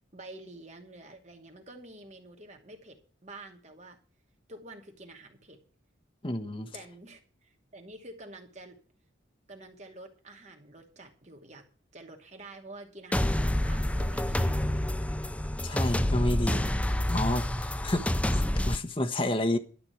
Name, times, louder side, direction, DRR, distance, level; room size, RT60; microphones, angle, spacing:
voice 1, 0.1-4.0 4.5-5.6 6.7-8.8 9.5-11.6 11.9-14.7, right 2 dB, 35° right, 2.6 m, -48 dB
voice 2, 6.2-6.7 15.6-16.7 17.1-19.6, left 1 dB, 25° left, 1.3 m, -30 dB
sound 1, 13.1-18.8, left 1 dB, 5° left, 0.5 m, -28 dB
12.0 x 5.9 x 9.4 m
head